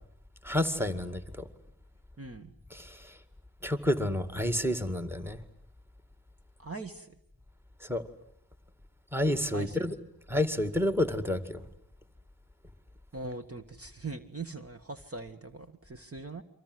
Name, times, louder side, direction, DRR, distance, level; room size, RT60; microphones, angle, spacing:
voice 1, 0.4-1.5 2.7-3.2 3.6-5.4 7.8-8.0 9.1-9.9 10.3-11.6, left 1 dB, 5° right, 11 dB, 2.1 m, -30 dB
voice 2, 2.2-2.5 6.6-7.2 9.5-9.8 13.1-16.4, right 3 dB, 35° right, 7 dB, 1.7 m, -41 dB
29.5 x 24.5 x 7.9 m, 0.72 s
wide cardioid pair, 85°, 39 cm